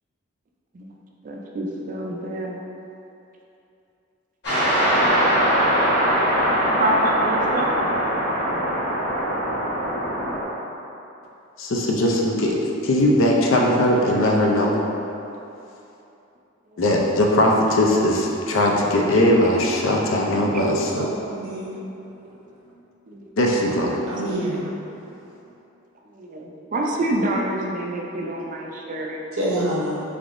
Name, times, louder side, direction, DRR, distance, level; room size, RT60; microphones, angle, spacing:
voice 1, 1.2-2.6 6.8-7.7 13.6-13.7 16.7-16.8 21.5-21.6 22.2-22.4 23.1-23.2 23.8-24.0 24.5-24.6 26.0-29.2, right 1 dB, 40° right, 0 dB, 0.3 m, -27 dB
sound 1, 4.4-10.4, equal, 50° left, 1.1 m, -21 dB
voice 2, 11.6-14.8 16.8-21.1 23.4-24.0, left 1 dB, 70° left, -1 dB, 0.5 m, -19 dB
voice 3, 20.5-21.7 24.1-24.6 29.3-30.0, right 1 dB, 80° right, -5 dB, 0.8 m, -26 dB
3.8 x 3.4 x 2.5 m, 2.8 s
head